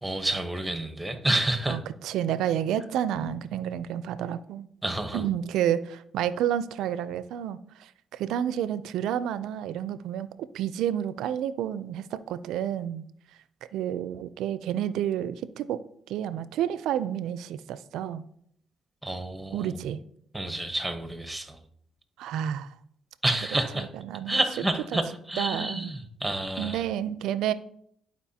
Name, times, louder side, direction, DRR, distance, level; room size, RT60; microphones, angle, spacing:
voice 1, 0.0-1.8 4.8-5.2 19.0-19.8 20.3-21.6 23.2-23.9 24.3-26.8, right 1 dB, 5° right, 1.0 m, -29 dB
voice 2, 1.7-4.7 5.1-13.0 13.7-15.8 16.1-18.2 19.5-20.0 22.2-22.7 23.8-24.4 25.4-25.9 26.6-27.5, right 10 dB, 85° right, 0.4 m, -30 dB
11.5 x 4.6 x 2.8 m
cardioid pair, 90°, 0 cm